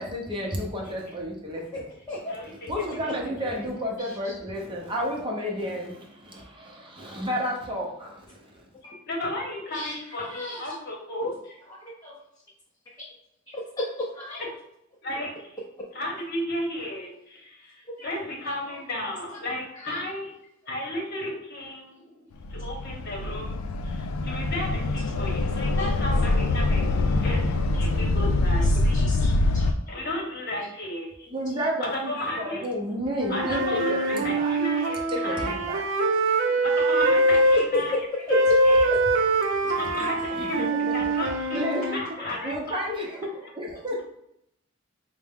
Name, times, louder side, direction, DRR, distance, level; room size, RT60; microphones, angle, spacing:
voice 1, 0.0-1.8 2.7-8.7 31.3-34.5 35.1-35.8 40.3-40.7 41.5-41.8 42.2-44.0, equal, 25° right, -1 dB, 0.6 m, -31 dB
voice 2, 2.3-3.1 3.4-3.6 9.1-11.3 15.0-15.6 15.9-20.3 20.7-22.2 22.5-29.1 29.9-31.3 31.8-32.7 33.3-35.7 36.6-38.9 39.7-40.6 40.9-41.6 41.9-42.8, left 1 dB, 50° left, -1 dB, 1.0 m, -34 dB
voice 3, 4.0-4.3 8.8-8.9 9.7-10.8 11.2-11.3 11.6-12.2 13.0-13.1 13.5-14.4 18.0-18.2 18.4-18.5 19.7-20.0 25.8-25.9 27.9-28.0 28.6-29.7 38.1-38.7, left 1 dB, 20° left, -4 dB, 0.6 m, -34 dB
sound 1, 22.4-29.7, left 2 dB, 85° left, 0.4 m, -24 dB
Wind instrument woodwind instrument, 33.2-37.6 38.3-42.0, right 1 dB, 60° right, 0.4 m, -23 dB
4.5 x 2.1 x 3.5 m, 0.77 s
head